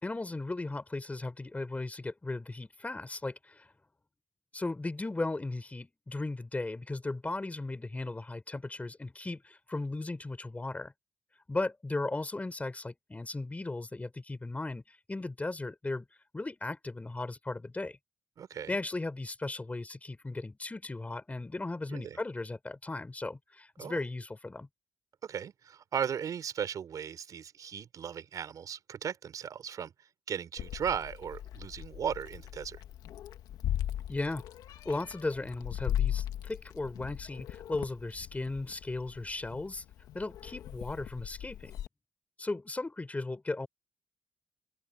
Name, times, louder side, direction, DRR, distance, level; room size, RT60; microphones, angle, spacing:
voice 1, 0.0-3.7 4.5-10.9 11.5-16.0 16.3-18.0 18.7-24.7 34.1-34.4 34.8-39.8 40.1-41.7 42.4-43.7, left 2 dB, 20° left, 3.7 m, -36 dB
voice 2, 18.4-18.8 21.9-22.2 23.8-24.0 25.2-29.9 30.3-32.8, right 8 dB, 65° right, 4.2 m, -36 dB
Meow, 30.6-41.9, left 11 dB, 80° left, 1.7 m, -38 dB
supercardioid pair, 60°, 7 cm